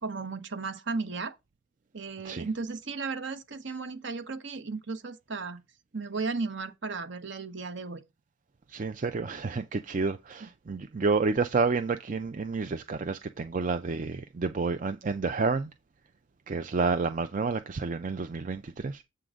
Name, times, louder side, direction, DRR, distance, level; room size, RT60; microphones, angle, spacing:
voice 1, 0.0-1.4 1.9-5.6 5.9-8.0 10.4-10.5, right 4 dB, 60° right, 1.0 m, -35 dB
voice 2, 8.7-15.7 16.5-19.0, right 4 dB, 40° right, 0.4 m, -29 dB
7.7 x 3.8 x 6.2 m
head